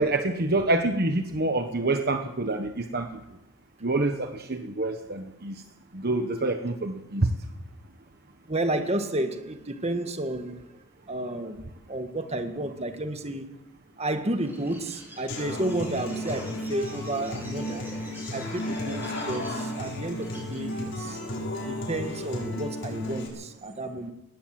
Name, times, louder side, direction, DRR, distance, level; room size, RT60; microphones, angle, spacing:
voice 1, 0.0-3.2 3.8-5.6 5.9-7.3, right 2 dB, 45° right, 6 dB, 1.2 m, -27 dB
voice 2, 8.5-10.8 11.1-11.6 11.9-13.5 14.0-17.8 18.3-21.2 21.7-24.1, right 1 dB, 30° right, 7 dB, 1.7 m, -31 dB
Bird, 14.3-20.9, equal, 10° right, 8.0 m, -46 dB
Human voice / Acoustic guitar, 15.3-23.3, left 1 dB, 55° left, 7.5 m, -34 dB
19.5 x 18.0 x 7.6 m, 0.93 s
head